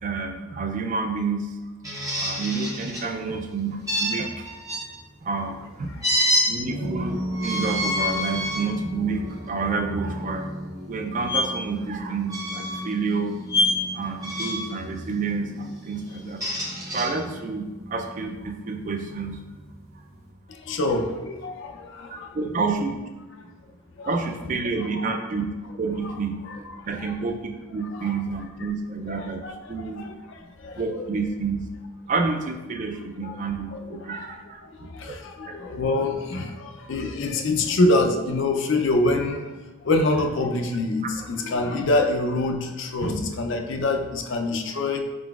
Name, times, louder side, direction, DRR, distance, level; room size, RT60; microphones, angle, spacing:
voice 1, 0.0-1.5 2.2-4.5 5.2-5.9 6.5-10.5 10.9-13.3 13.9-16.4 16.9-17.6 17.9-19.4 22.1-23.0 24.1-29.4 29.7-30.0 30.8-31.7 32.1-35.1 35.5-35.6, right 4 dB, 35° right, 5 dB, 0.3 m, -29 dB
sound 1, 1.8-3.0 3.9-4.8 6.0-6.5 7.3-8.6 9.3-9.5 11.3-11.4 12.3-12.8 13.5-13.8 14.2-14.7 16.1-17.1, left 1 dB, 15° right, 0.7 m, -26 dB
sound 2, 3.0-20.3, equal, 60° right, 0.8 m, -37 dB
voice 2, 20.5-22.4 23.4-23.5 24.0-24.1 24.4-25.1 26.4-27.1 27.9-28.2 29.1-31.1 33.2-45.1, left 2 dB, 55° left, 5 dB, 0.4 m, -26 dB
4.8 x 3.8 x 2.3 m, 1.2 s
head